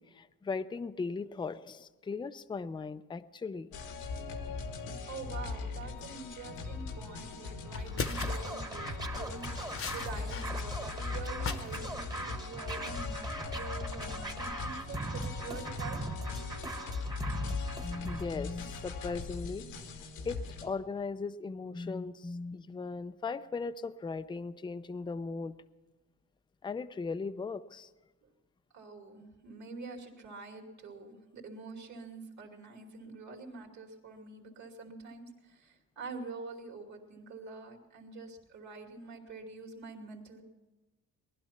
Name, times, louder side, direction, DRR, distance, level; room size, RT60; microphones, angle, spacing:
voice 1, 0.0-3.8 17.8-19.7 20.2-25.5 26.6-27.9, left 4 dB, 15° left, 11 dB, 0.5 m, -38 dB
sound 1, 3.7-20.7, left 4 dB, 85° left, 1.7 m, -40 dB
voice 2, 5.0-16.0 28.2-28.3 28.7-40.5, right 3 dB, 55° right, 3 dB, 2.7 m, -46 dB
sound 2, 7.2-7.3 7.7-8.5 9.1-10.5 10.7-11.8 12.1-12.4, left 5 dB, 40° left, 1.0 m, -38 dB
Scratching (performance technique), 7.9-18.3, right 2 dB, 10° right, 1.2 m, -40 dB
19.0 x 11.5 x 5.8 m, 1.2 s
cardioid pair, 95°, 34 cm